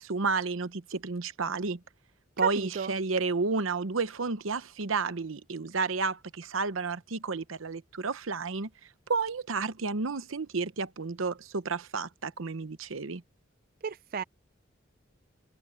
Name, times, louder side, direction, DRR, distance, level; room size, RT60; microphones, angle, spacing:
voice 1, 0.0-1.8 2.4-8.7 9.1-13.2, right 4 dB, 90° right, 0.9 m, -31 dB
voice 2, 2.4-2.9 13.8-14.2, right 6 dB, 45° right, 0.4 m, -32 dB
head